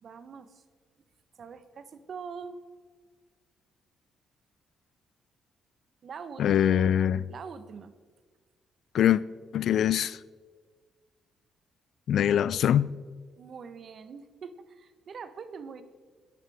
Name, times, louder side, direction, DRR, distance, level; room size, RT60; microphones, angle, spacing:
voice 1, 0.0-0.6 1.4-2.6 6.0-6.9 7.3-7.9 13.4-15.8, right 5 dB, 55° right, 1.0 m, -43 dB
voice 2, 6.4-7.3 8.9-9.2 9.5-10.2 12.1-12.9, left 10 dB, 70° left, 0.4 m, -23 dB
17.0 x 11.0 x 3.5 m
cardioid pair, 90°, 0 cm